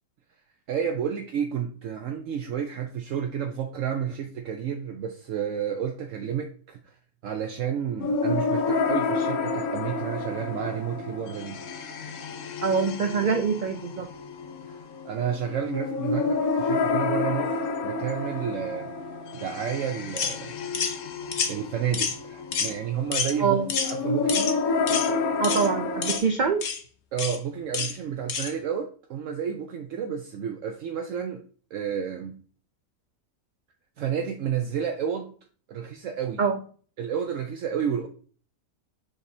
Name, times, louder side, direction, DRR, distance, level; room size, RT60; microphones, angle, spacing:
voice 1, 0.7-7.0 7.2-11.6 15.0-18.9 19.3-20.5 21.5-24.6 27.1-31.4 31.7-32.4 34.0-35.3 35.7-36.4 37.0-38.1, right 8 dB, 70° right, 1.0 m, -31 dB
sound 1, 8.0-26.2, left 4 dB, 85° left, 1.2 m, -29 dB
voice 2, 12.6-14.1 23.4-23.7 25.4-26.6 36.4-36.6, right 5 dB, 85° right, 0.4 m, -24 dB
sound 2, 20.2-20.4 20.7-21.0 21.3-21.5 21.9-22.2 22.5-22.7 23.1-23.3 23.7-23.9 24.3-24.5 24.9-25.1 25.4-25.7 26.0-26.2 26.6-26.8 27.2-27.4 27.7-27.9 28.3-28.5, left 6 dB, 55° left, 1.0 m, -28 dB
6.9 x 5.2 x 2.7 m
omnidirectional pair, 1.5 m